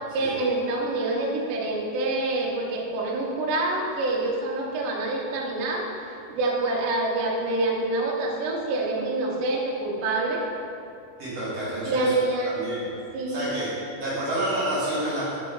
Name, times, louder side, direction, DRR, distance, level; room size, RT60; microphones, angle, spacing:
voice 1, 0.1-10.5 11.8-12.6 13.1-13.6, right 2 dB, 70° right, -3 dB, 2.3 m, -26 dB
voice 2, 11.2-12.1 12.4-12.9 13.3-13.7 14.0-15.4, right 1 dB, 50° right, -9 dB, 2.3 m, -29 dB
8.2 x 4.3 x 5.8 m, 2.6 s
omnidirectional pair, 4.9 m